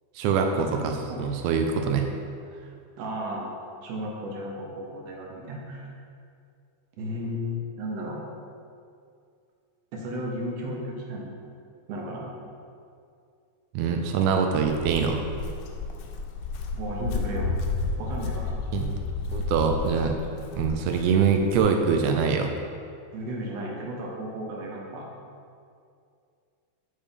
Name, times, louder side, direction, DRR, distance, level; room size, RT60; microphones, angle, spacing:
voice 1, 0.1-2.1 13.7-15.3 18.7-18.9 19.3-20.2 20.5-22.5, right 6 dB, 85° right, 4 dB, 1.4 m, -24 dB
voice 2, 0.7-1.3 3.0-3.5 3.8-5.9 7.0-8.2 9.9-11.3 11.9-12.3 16.7-17.5 18.0-18.5 23.1-25.1, equal, 65° right, -1 dB, 2.0 m, -34 dB
Walk footsteps, 14.6-21.6, left 3 dB, 80° left, 1.9 m, -32 dB
8.5 x 3.6 x 5.2 m, 2.4 s
omnidirectional pair, 3.5 m